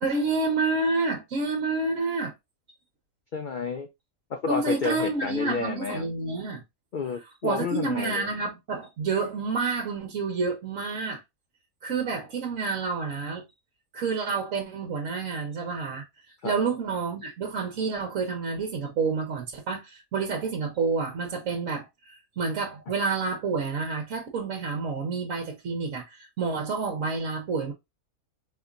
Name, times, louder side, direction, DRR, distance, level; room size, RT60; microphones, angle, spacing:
voice 1, 0.0-2.3 4.5-6.6 7.4-11.2 11.8-13.4 13.9-16.0 16.4-27.7, right 4 dB, 65° right, 1.3 m, -29 dB
voice 2, 3.3-3.9 4.3-6.0 6.9-8.3 16.4-16.5, left 5 dB, 90° left, 0.4 m, -30 dB
4.2 x 2.9 x 2.5 m
omnidirectional pair, 1.5 m